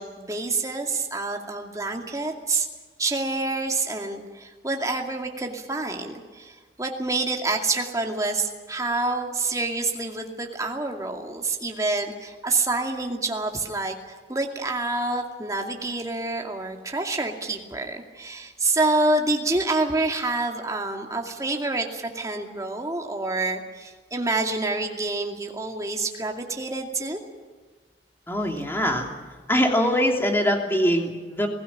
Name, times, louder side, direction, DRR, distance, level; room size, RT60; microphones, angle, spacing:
voice 1, 0.0-2.7 3.0-13.9 14.3-27.2, right 2 dB, 20° right, 2 dB, 2.4 m, -27 dB
voice 2, 28.3-29.1 29.5-31.5, equal, 15° left, 2 dB, 2.9 m, -22 dB
22.0 x 16.0 x 10.0 m, 1.4 s
head